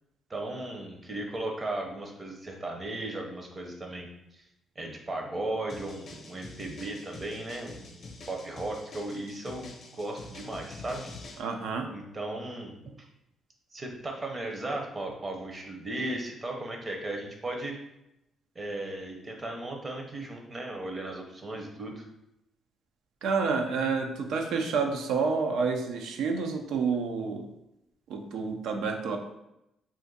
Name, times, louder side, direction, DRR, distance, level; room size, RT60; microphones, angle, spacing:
voice 1, 0.3-4.4 4.8-11.1 11.9-12.8 13.7-17.8 18.5-22.0, right 2 dB, 30° right, 2 dB, 0.7 m, -36 dB
sound 1, 5.7-11.4, left 3 dB, 50° left, 0.6 m, -46 dB
voice 2, 11.4-11.9 23.2-27.5 28.1-29.2, right 5 dB, 80° right, 4 dB, 0.4 m, -29 dB
2.5 x 2.5 x 3.8 m, 0.85 s
cardioid pair, 90°, 0 cm